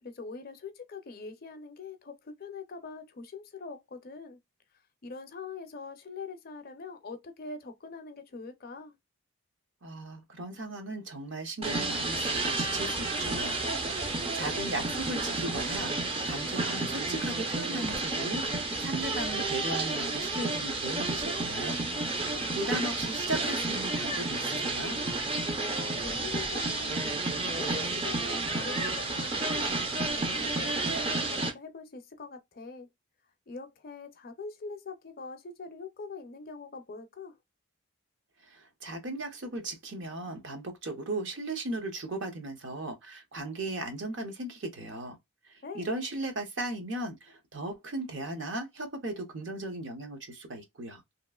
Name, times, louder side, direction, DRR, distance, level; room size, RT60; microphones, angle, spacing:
voice 1, 0.0-4.4 5.0-9.0 14.1-14.3 22.1-22.5 25.8-27.0 27.4-29.7 30.1-32.9 33.5-37.4 45.6-45.9, left 4 dB, 40° left, 0.5 m, -43 dB
voice 2, 9.8-13.6 13.9-18.4 18.8-21.8 22.2-25.0 38.4-45.2 45.4-51.0, right 2 dB, 55° right, 0.8 m, -37 dB
sound 1, 11.6-31.5, right 2 dB, 25° right, 0.4 m, -31 dB
2.9 x 2.4 x 2.2 m
head